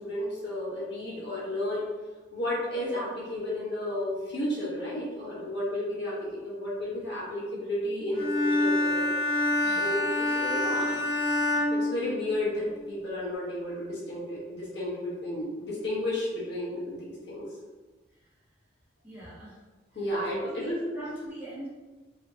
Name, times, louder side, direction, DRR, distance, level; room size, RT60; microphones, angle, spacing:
voice 1, 0.0-1.9 2.3-9.1 9.6-11.0 11.7-17.5 19.9-21.1, left 1 dB, 65° left, -7 dB, 1.3 m, -32 dB
Bowed string instrument, 8.1-12.6, left 1 dB, 90° left, 1.1 m, -27 dB
voice 2, 9.6-9.9 19.0-19.6 20.4-21.7, equal, 10° right, -11 dB, 1.3 m, -42 dB
3.2 x 3.0 x 2.7 m, 1.3 s
head